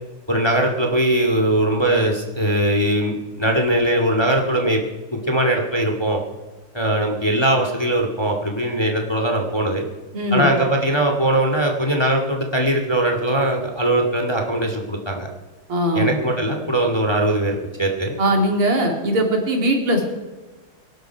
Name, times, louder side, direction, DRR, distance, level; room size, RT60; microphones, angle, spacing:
voice 1, 0.3-4.8 5.1-6.2 6.7-9.8 10.3-15.3 15.9-18.1, right 1 dB, 10° left, 2 dB, 2.1 m, -20 dB
voice 2, 10.1-10.5 15.7-16.2 18.2-20.1, right 1 dB, 80° right, 1 dB, 3.6 m, -20 dB
24.5 x 12.0 x 4.7 m, 1.2 s
omnidirectional pair, 2.4 m